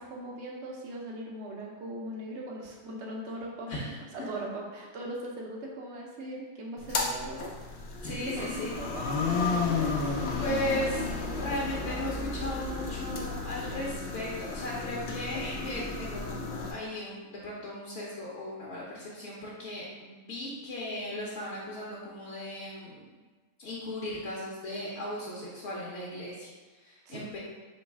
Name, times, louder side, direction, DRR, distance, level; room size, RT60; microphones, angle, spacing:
voice 1, 0.0-7.5 8.4-9.2 27.1-27.2, right 1 dB, 70° right, -1 dB, 0.6 m, -40 dB
voice 2, 3.7-4.3 8.0-8.7 10.4-23.1 23.6-27.4, left 1 dB, 50° left, -6 dB, 0.8 m, -37 dB
sound 1, 6.8-16.7, left 4 dB, 85° left, 0.5 m, -33 dB
3.1 x 3.0 x 4.6 m, 1.3 s
omnidirectional pair, 1.9 m